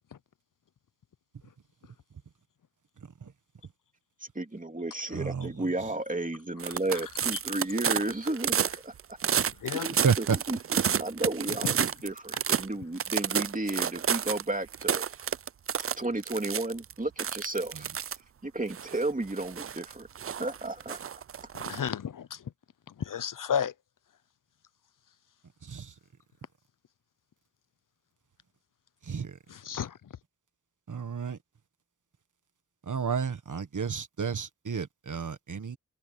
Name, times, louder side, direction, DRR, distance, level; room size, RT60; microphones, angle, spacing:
voice 1, 4.2-9.2 9.7-15.0 15.8-17.9 18.4-20.1 20.4-21.0, right 2 dB, 25° right, 2.8 m, -33 dB
voice 2, 5.1-5.5 10.0-10.2 25.7-25.9 29.1-29.3 30.9-31.4 32.9-35.8, right 6 dB, 75° right, 1.5 m, -31 dB
sound 1, 6.6-12.7 13.0-14.4 14.7-16.9 17.2-18.2 18.7-21.8, right 8 dB, 45° right, 0.4 m, -30 dB
voice 3, 21.5-22.4 23.0-23.7 29.5-30.0, left 8 dB, 85° left, 0.7 m, -32 dB
wide cardioid pair, 75°, 31 cm